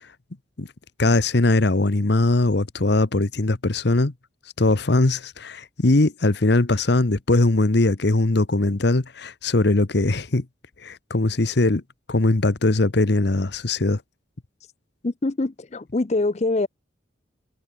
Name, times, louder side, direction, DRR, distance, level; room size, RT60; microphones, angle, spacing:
voice 1, 1.0-4.1 4.6-10.4 10.8-11.8 12.1-14.0, left 2 dB, 60° left, 1.0 m, -20 dB
voice 2, 15.0-16.7, left 2 dB, 35° left, 0.5 m, -24 dB
head